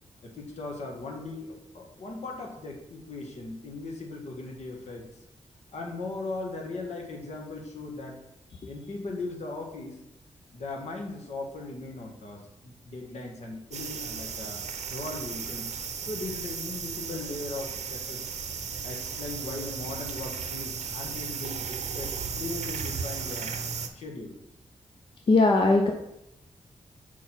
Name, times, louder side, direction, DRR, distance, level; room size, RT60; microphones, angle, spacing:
voice 1, 0.2-5.1 5.7-8.2 8.7-10.0 10.5-14.6 14.9-15.7 16.0-18.2 18.8-23.6 23.9-24.4, left 2 dB, 70° left, 0 dB, 1.3 m, -38 dB
sound 1, 13.7-23.9, right 6 dB, 70° right, 0.6 m, -35 dB
voice 2, 25.3-25.9, left 3 dB, 45° left, 3 dB, 0.5 m, -19 dB
4.7 x 4.5 x 5.8 m, 0.84 s
wide cardioid pair, 175°, 12 cm